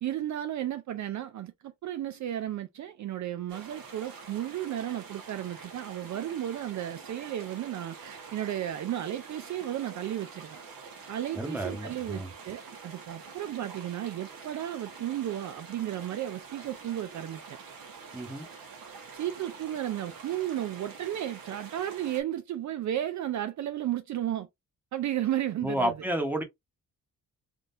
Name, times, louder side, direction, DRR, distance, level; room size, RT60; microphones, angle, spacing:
voice 1, 0.0-10.6 11.1-17.6 19.1-24.5 24.9-25.9, right 12 dB, 55° right, 0.4 m, -34 dB
sound 1, 3.5-22.2, right 5 dB, 70° right, 1.1 m, -46 dB
voice 2, 11.4-12.3 18.1-18.5 25.6-26.4, right 1 dB, 5° right, 1.0 m, -31 dB
3.6 x 2.4 x 2.6 m
cardioid pair, 135°, 35 cm